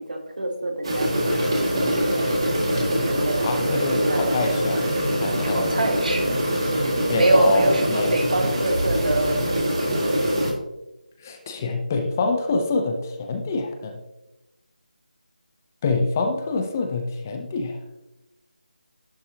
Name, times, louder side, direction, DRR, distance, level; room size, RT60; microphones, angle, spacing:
voice 1, 0.0-4.7 5.4-6.4 7.1-10.2, right 2 dB, 60° right, 4 dB, 1.5 m, -26 dB
sound 1, 0.8-10.5, equal, 40° right, 1.9 m, -23 dB
voice 2, 3.4-4.8 5.1-5.7 7.1-8.1 11.2-14.0 15.8-17.8, left 3 dB, 20° left, 5 dB, 0.5 m, -26 dB
10.5 x 5.6 x 2.7 m, 0.97 s
figure-of-eight pair, 165°, 5 cm